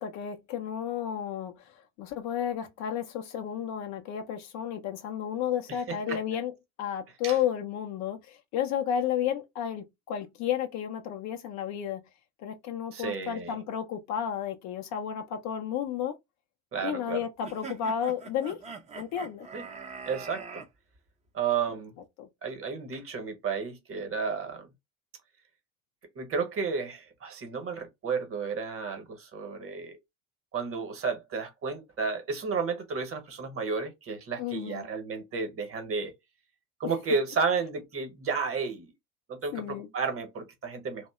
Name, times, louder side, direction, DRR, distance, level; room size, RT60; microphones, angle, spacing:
voice 1, 0.0-6.5 6.8-12.0 12.4-16.2 16.8-18.6 18.9-19.5 22.2-22.3 34.4-34.9 36.8-36.9 39.5-39.9, left 9 dB, 45° left, 0.5 m, -32 dB
voice 2, 5.9-6.2 7.2-7.3 12.9-13.6 16.7-17.2 19.5-19.6 20.1-20.6 21.3-21.9 22.4-24.7 26.1-30.0 30.5-36.1 36.8-38.9 39.3-41.1, right 5 dB, 35° right, 1.0 m, -32 dB
sound 1, 17.4-20.7, right 5 dB, 15° right, 0.6 m, -42 dB
2.6 x 2.1 x 2.3 m
figure-of-eight pair, 65°, 41 cm